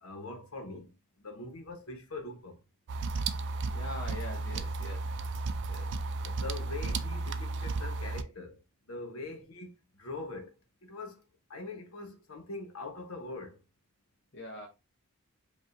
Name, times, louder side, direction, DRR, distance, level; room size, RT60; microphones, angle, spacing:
voice 1, 0.0-2.6 6.2-10.6 10.8-11.2 11.5-13.6, left 3 dB, 80° left, 1.2 m, -43 dB
sound 1, 2.9-8.2, right 3 dB, 55° right, 0.4 m, -34 dB
voice 2, 3.7-5.1 5.7-5.9 14.3-14.7, left 1 dB, 55° left, 0.8 m, -43 dB
5.4 x 2.6 x 2.6 m
head